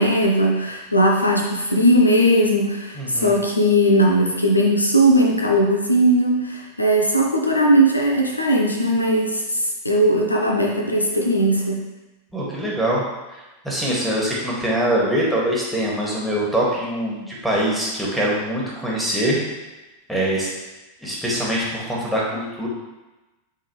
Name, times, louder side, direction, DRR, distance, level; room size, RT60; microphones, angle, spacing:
voice 1, 0.0-11.8, equal, 85° left, 0 dB, 0.7 m, -18 dB
voice 2, 3.0-3.3 12.3-13.0 13.6-19.4 20.1-20.5 21.0-22.7, right 1 dB, ahead, -7 dB, 1.9 m, -23 dB
9.0 x 3.6 x 3.2 m, 1.1 s
figure-of-eight pair, 90°, 0 cm